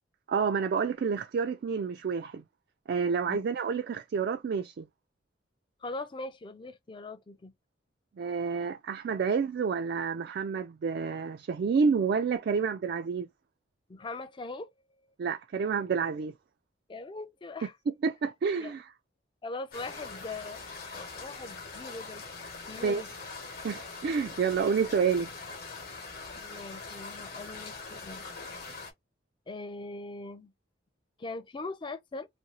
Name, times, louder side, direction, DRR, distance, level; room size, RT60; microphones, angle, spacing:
voice 1, 0.3-2.4 2.9-4.9 8.2-13.3 15.2-16.3 17.9-18.8 22.8-23.0 23.6-25.3, right 5 dB, 55° right, 0.3 m, -29 dB
voice 2, 5.8-7.5 13.9-14.7 16.9-17.7 18.6-18.7 19.4-22.3 22.7-23.1 26.3-28.3 29.5-30.5 31.2-32.3, left 3 dB, 25° left, 0.4 m, -41 dB
sound 1, 19.7-28.9, left 4 dB, 55° left, 1.0 m, -43 dB
2.7 x 2.6 x 2.9 m
head